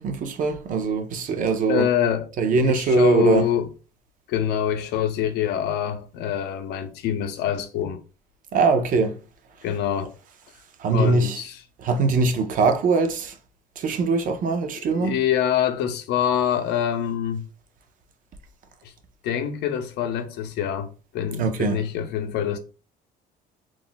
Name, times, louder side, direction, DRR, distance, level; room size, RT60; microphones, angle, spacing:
voice 1, 0.0-1.9 2.4-3.5 8.5-9.2 10.8-11.4 11.8-13.3 13.8-15.2 21.4-21.8, right 4 dB, 50° right, 0.5 m, -22 dB
voice 2, 1.7-2.3 2.6-3.7 4.3-8.0 9.6-10.1 10.9-11.6 14.8-17.4 18.8-18.9 19.2-22.6, left 9 dB, 80° left, 0.5 m, -25 dB
2.4 x 2.1 x 3.8 m
cardioid pair, 110°, 17 cm